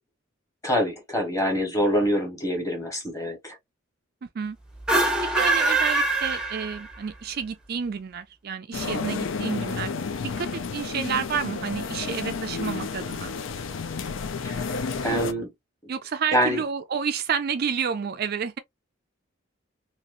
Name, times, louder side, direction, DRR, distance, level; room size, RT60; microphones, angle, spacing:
voice 1, 0.6-3.6 9.1-9.2 14.4-15.5 15.8-15.9 16.3-16.6, equal, 15° left, 1.4 m, -26 dB
voice 2, 4.2-4.6 5.4-9.9 10.4-13.3 15.9-18.6, right 6 dB, 50° right, 0.3 m, -30 dB
sound 1, 4.8-7.1, right 2 dB, 5° right, 0.7 m, -23 dB
sound 2, 8.7-15.3, left 4 dB, 70° left, 0.5 m, -31 dB
2.9 x 2.8 x 2.5 m
head